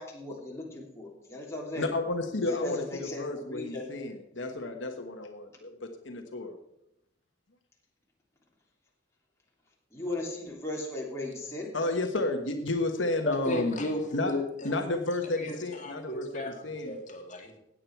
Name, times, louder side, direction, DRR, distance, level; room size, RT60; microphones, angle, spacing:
voice 1, 0.0-1.9 2.5-3.9 9.9-11.7, left 1 dB, 15° left, -3 dB, 3.1 m, -37 dB
voice 2, 1.8-6.6 11.7-13.8 14.1-14.4 14.6-17.0, left 2 dB, 80° left, 4 dB, 1.3 m, -31 dB
voice 3, 13.2-14.7 15.4-17.6, left 1 dB, 40° left, 2 dB, 2.2 m, -35 dB
16.5 x 8.7 x 4.6 m, 0.83 s
head